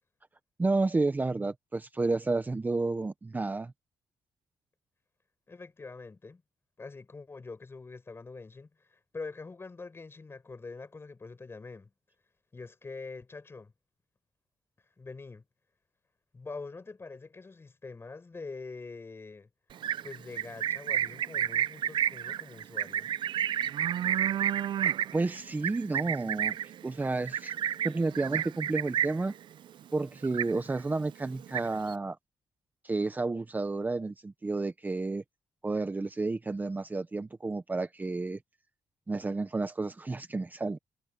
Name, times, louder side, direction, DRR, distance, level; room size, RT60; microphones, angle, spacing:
voice 1, 0.6-3.7 25.1-26.6 26.8-27.5 27.8-29.3 29.9-32.2 32.8-35.2 35.6-38.4 39.1-40.8, right 3 dB, 20° right, 0.9 m, -31 dB
voice 2, 5.5-6.4 6.8-11.9 12.5-13.7 15.0-15.4 16.3-19.5 20.0-23.1, left 3 dB, 25° left, 7.6 m, -44 dB
Livestock farm animals working animals, 19.7-29.3 29.7-30.0 30.2-30.9 31.2-31.9, right 10 dB, 65° right, 0.6 m, -31 dB
cardioid pair, 90°, 9 cm